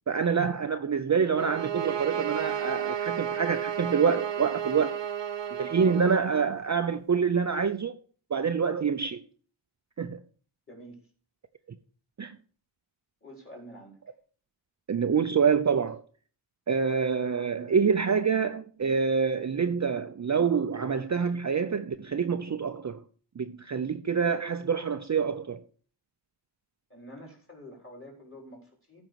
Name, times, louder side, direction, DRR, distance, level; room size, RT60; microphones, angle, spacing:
voice 1, 0.1-5.0 5.5-7.9 8.3-9.2 10.0-10.2 12.2-12.3 14.9-16.0 16.7-23.0 23.4-25.6, right 6 dB, 35° right, 0.6 m, -26 dB
sound 1, 1.4-6.3, right 9 dB, 65° right, 0.8 m, -32 dB
voice 2, 10.7-11.0 13.2-14.0 26.9-29.0, equal, 25° left, 4.3 m, -47 dB
14.0 x 5.2 x 4.6 m
wide cardioid pair, 100°, 48 cm